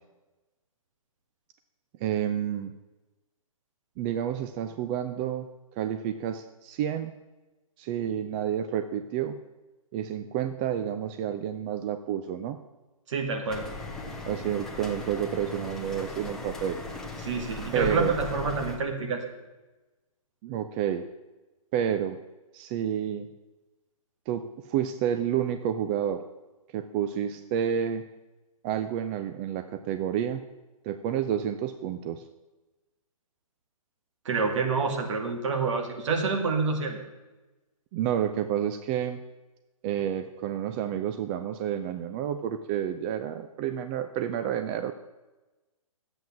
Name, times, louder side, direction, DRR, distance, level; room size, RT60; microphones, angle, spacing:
voice 1, 2.0-2.7 4.0-5.5 5.7-7.1 7.8-9.4 9.9-12.6 14.3-16.8 17.7-18.1 20.4-21.1 21.7-22.2 22.5-23.3 24.3-26.2 26.7-28.0 28.6-30.4 30.8-32.2 37.9-39.2 39.8-44.9, right 9 dB, 20° right, 9 dB, 0.3 m, -30 dB
voice 2, 13.1-13.6 17.2-19.2 34.2-37.0, right 4 dB, 55° right, 3 dB, 2.3 m, -27 dB
sound 1, 13.5-18.8, left 3 dB, 5° left, 1.2 m, -38 dB
10.5 x 7.8 x 7.2 m, 1.1 s
hypercardioid pair, 145°, 19 cm